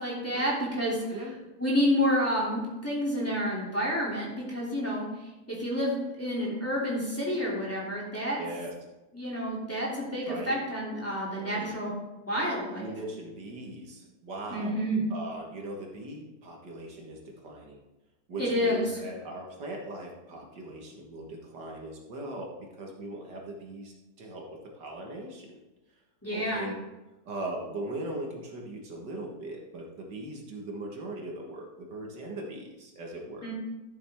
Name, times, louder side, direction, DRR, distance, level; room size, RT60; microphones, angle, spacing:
voice 1, 0.0-1.0 1.6-5.1 5.5-8.4 9.1-11.9 12.3-12.9 14.5-15.0 18.4-19.0 26.2-26.7 33.4-33.5, equal, 10° left, -6 dB, 2.8 m, -29 dB
voice 2, 8.4-8.7 10.3-10.6 11.3-11.8 12.8-14.7 15.1-17.8 18.3-25.6 26.3-26.8 27.3-33.5, right 1 dB, 85° right, 0 dB, 2.3 m, -39 dB
13.0 x 7.3 x 3.6 m, 1.1 s
omnidirectional pair, 1.8 m